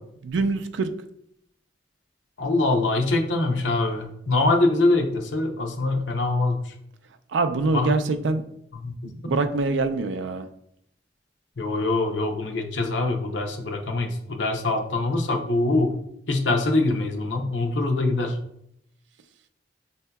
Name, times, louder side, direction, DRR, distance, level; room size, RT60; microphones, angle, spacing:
voice 1, 0.2-0.9 7.3-8.4 9.0-10.5, right 3 dB, 80° right, 9 dB, 0.4 m, -24 dB
voice 2, 2.4-6.7 7.7-7.9 8.8-8.9 11.6-15.9 16.3-18.4, left 2 dB, 85° left, 4 dB, 0.6 m, -23 dB
6.4 x 2.7 x 2.3 m, 0.72 s
head